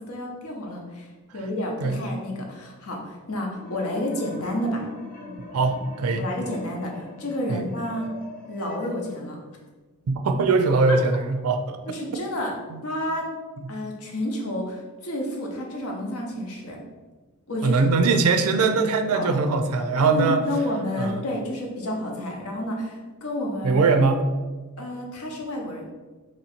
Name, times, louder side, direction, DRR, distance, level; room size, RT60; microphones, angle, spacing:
voice 1, 0.1-1.1 1.3-4.8 6.2-8.1 8.5-9.4 10.9-11.0 11.9-12.5 12.8-13.3 13.7-16.8 17.5-17.8 19.1-19.3 20.0-23.8 24.8-25.9, left 1 dB, 70° left, 0 dB, 0.8 m, -30 dB
sound 1, 3.5-9.0, left 2 dB, 40° left, 0.8 m, -41 dB
voice 2, 5.5-6.3 7.5-7.6 10.1-11.8 12.7-12.8 13.6-13.7 17.6-20.4 21.0-21.2 23.6-24.2, right 4 dB, 75° right, 6 dB, 0.4 m, -21 dB
3.0 x 2.8 x 4.2 m, 1.3 s
head